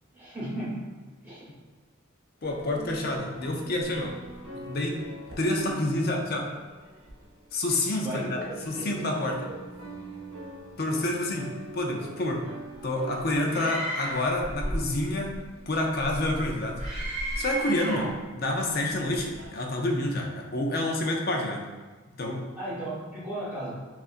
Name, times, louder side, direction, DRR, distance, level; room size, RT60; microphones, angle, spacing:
voice 1, 0.1-0.8 1.2-1.4 8.0-9.0 9.3-9.6 17.8-18.1 22.6-23.8, right 1 dB, 10° right, -9 dB, 1.3 m, -36 dB
voice 2, 2.4-4.1 4.5-5.0 5.4-6.5 7.5-8.4 8.7-9.4 10.8-11.5 11.7-12.4 12.8-15.3 15.7-16.8 17.4-21.6 22.2-22.4, left 1 dB, 50° left, 1 dB, 0.6 m, -28 dB
sound 1, 2.4-7.8 8.0-19.5, right 1 dB, 75° right, 0.8 m, -41 dB
Screaming, 13.5-14.4 16.8-18.2, right 1 dB, 35° right, 0.9 m, -33 dB
5.1 x 2.5 x 2.5 m, 1.3 s
head